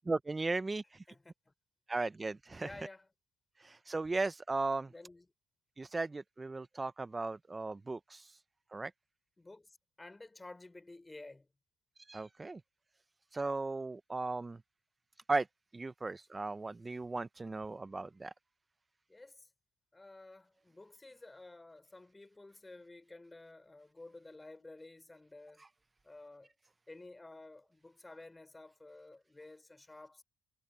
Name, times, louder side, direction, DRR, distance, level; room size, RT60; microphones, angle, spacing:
voice 1, 0.0-1.0 1.9-2.7 3.6-4.9 5.8-8.4 8.7-8.9 12.0-12.6 13.3-14.6 15.3-15.5 15.7-18.3 25.6-25.7, right 3 dB, 20° right, 0.4 m, -36 dB
voice 2, 1.1-1.5 2.6-3.1 4.9-5.3 9.4-11.5 19.1-19.5 19.9-25.6 26.0-26.5 26.9-30.2, left 2 dB, 15° left, 5.2 m, -53 dB
cardioid pair, 90°, 0 cm